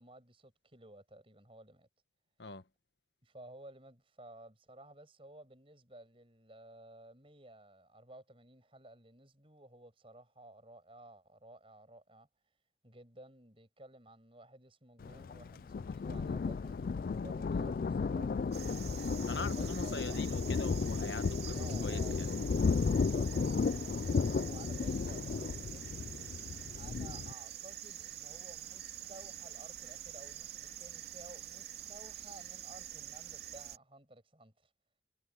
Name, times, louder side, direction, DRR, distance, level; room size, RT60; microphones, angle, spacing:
voice 1, 0.0-1.9 3.2-12.3 12.8-18.4 19.4-20.2 21.5-22.2 22.8-26.2 26.7-34.7, right 1 dB, 30° right, 7.8 m, -55 dB
Thunder, 15.0-27.3, left 5 dB, 50° left, 0.3 m, -34 dB
sound 1, 18.5-33.8, right 11 dB, 60° right, 3.0 m, -46 dB
voice 2, 19.3-22.3, left 3 dB, 75° left, 1.4 m, -42 dB
head